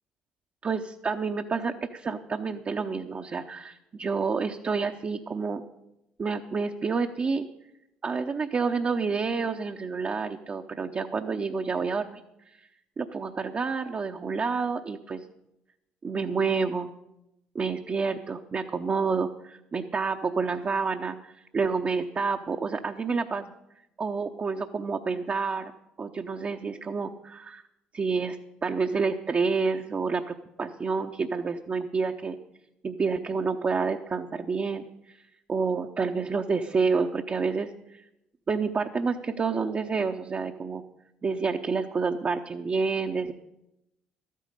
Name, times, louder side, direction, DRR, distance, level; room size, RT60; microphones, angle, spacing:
voice 1, 0.6-5.6 6.2-7.5 8.0-12.2 12.5-12.6 13.0-15.2 16.0-16.9 17.5-23.5 24.0-25.7 26.0-27.6 27.9-32.4 32.8-35.2 35.5-38.0 38.5-40.8 41.2-43.3, right 4 dB, 35° right, 4 dB, 0.8 m, -29 dB
13.0 x 9.2 x 6.7 m, 0.87 s
hypercardioid pair, 50°, 4 cm